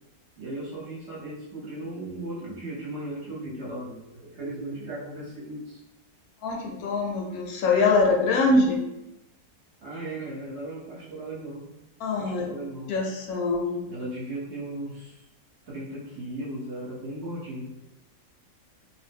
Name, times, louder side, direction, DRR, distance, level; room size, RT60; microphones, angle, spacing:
voice 1, 0.4-5.8 9.8-11.7 12.2-13.0 13.9-15.2 15.7-17.8, right 1 dB, 50° right, -6 dB, 1.0 m, -36 dB
voice 2, 6.4-8.8 12.0-12.5 12.9-13.8, left 3 dB, 75° left, 0 dB, 1.0 m, -23 dB
2.7 x 2.1 x 3.4 m, 0.90 s
omnidirectional pair, 1.7 m